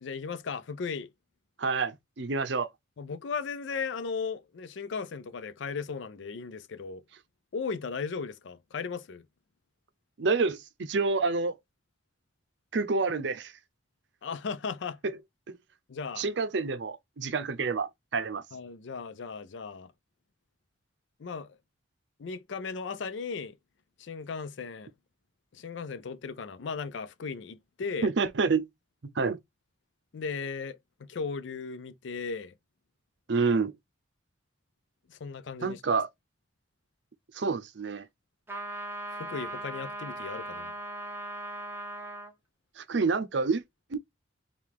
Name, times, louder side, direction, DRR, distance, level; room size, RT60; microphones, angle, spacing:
voice 1, 0.0-1.1 3.0-7.0 7.5-9.2 14.2-15.0 15.9-16.2 18.5-19.9 21.2-21.6 22.2-23.6 24.0-24.9 25.5-28.1 30.1-32.5 35.1-36.0 39.1-40.7, left 5 dB, 70° left, 0.4 m, -36 dB
voice 2, 1.6-2.7 10.2-11.5 12.7-13.5 15.0-15.2 16.2-18.4 28.0-28.7 29.2-29.4 33.3-33.7 35.6-36.1 37.3-38.0 42.8-43.6 43.9-44.0, right 4 dB, 65° right, 0.6 m, -28 dB
sound 1, 38.5-42.3, right 1 dB, 10° right, 0.9 m, -38 dB
4.7 x 2.4 x 3.5 m
head